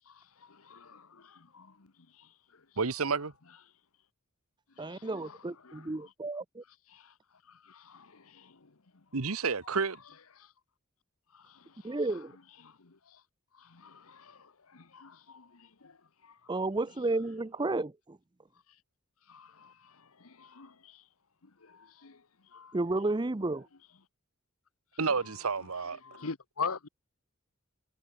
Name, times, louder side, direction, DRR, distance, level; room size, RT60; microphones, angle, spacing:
voice 1, 0.0-2.7 4.8-6.1 6.9-7.1 7.4-9.0 10.4-10.5 11.3-12.2 12.6-13.2 13.5-16.6 19.3-21.1 21.4-22.8 25.1-25.4 26.0-26.9, left 5 dB, 80° left, 1.2 m, -46 dB
voice 2, 2.8-3.3 9.1-10.0 25.0-26.0, right 5 dB, 85° right, 1.1 m, -30 dB
voice 3, 4.8-6.6 11.8-12.3 16.5-18.2 22.7-23.7, right 2 dB, 20° right, 0.6 m, -32 dB
head